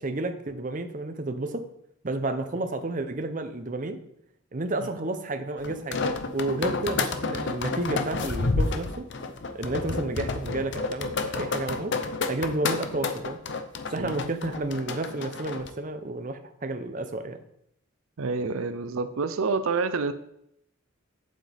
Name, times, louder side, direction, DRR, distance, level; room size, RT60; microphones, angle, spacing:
voice 1, 0.0-1.7 2.0-4.0 4.5-6.0 6.3-9.1 9.5-12.0 12.3-13.4 13.9-17.4, right 2 dB, 40° right, 7 dB, 0.7 m, -31 dB
sound 1, 5.6-15.7, left 3 dB, 55° left, 0.7 m, -30 dB
voice 2, 18.2-20.1, right 4 dB, 85° right, 11 dB, 0.5 m, -28 dB
8.6 x 7.7 x 3.5 m, 0.75 s
head